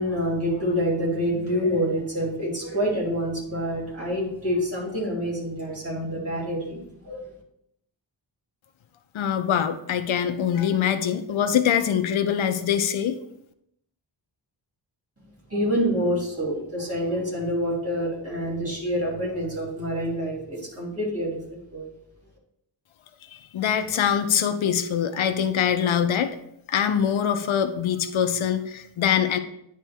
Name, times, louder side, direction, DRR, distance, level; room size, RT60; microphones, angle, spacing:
voice 1, 0.0-7.2 15.5-21.9, equal, 30° right, -4 dB, 3.0 m, -27 dB
voice 2, 9.1-13.2 23.3-26.4 26.7-29.4, left 8 dB, 90° left, 8 dB, 0.7 m, -23 dB
10.0 x 3.5 x 4.4 m, 0.75 s
wide cardioid pair, 165°, 46 cm